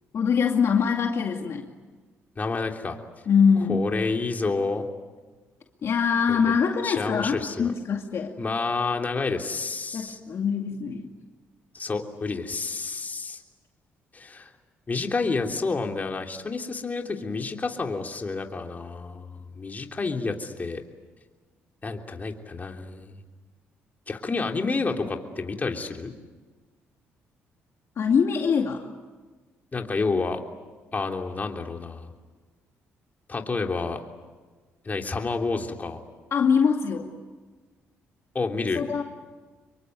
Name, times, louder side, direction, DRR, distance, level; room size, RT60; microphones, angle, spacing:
voice 1, 0.1-1.6 3.3-3.8 5.8-8.4 9.9-11.1 28.0-28.9 36.3-37.1 38.8-39.0, left 6 dB, 60° left, 2 dB, 2.4 m, -23 dB
voice 2, 2.4-3.0 3.7-4.9 6.3-6.5 6.8-7.7 8.4-10.2 11.7-13.4 14.1-14.5 14.9-20.8 21.8-23.2 24.1-26.1 29.7-30.4 30.9-32.1 33.3-34.0 34.8-36.0 38.3-38.8, left 4 dB, 30° left, 3 dB, 3.3 m, -29 dB
26.5 x 23.0 x 9.5 m, 1.4 s
supercardioid pair, 75°, 5 cm